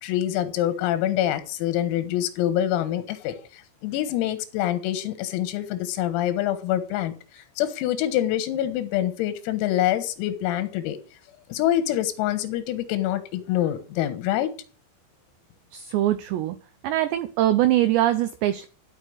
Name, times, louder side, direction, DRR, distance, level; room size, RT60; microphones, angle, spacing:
voice 1, 0.0-11.0 11.5-14.5, left 12 dB, 90° left, 12 dB, 4.0 m, -26 dB
voice 2, 15.7-16.6 16.8-18.7, right 13 dB, 85° right, 11 dB, 2.5 m, -22 dB
13.0 x 5.6 x 7.9 m, 0.39 s
omnidirectional pair, 6.0 m